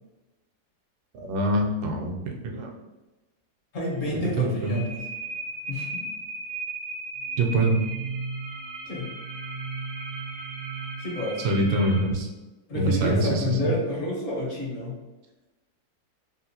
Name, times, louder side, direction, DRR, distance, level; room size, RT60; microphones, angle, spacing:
voice 1, 1.1-2.7 4.4-4.8 7.4-7.8 11.4-12.3 12.7-13.7, right 1 dB, 80° right, 1 dB, 1.2 m, -24 dB
voice 2, 3.7-5.0 5.7-6.0 8.8-9.1 11.0-11.4 12.7-15.0, left 1 dB, 55° left, -5 dB, 1.6 m, -29 dB
sound 1, 3.9-12.0, right 3 dB, 50° right, 0.5 m, -36 dB
3.6 x 2.5 x 2.7 m, 1.1 s
omnidirectional pair, 1.7 m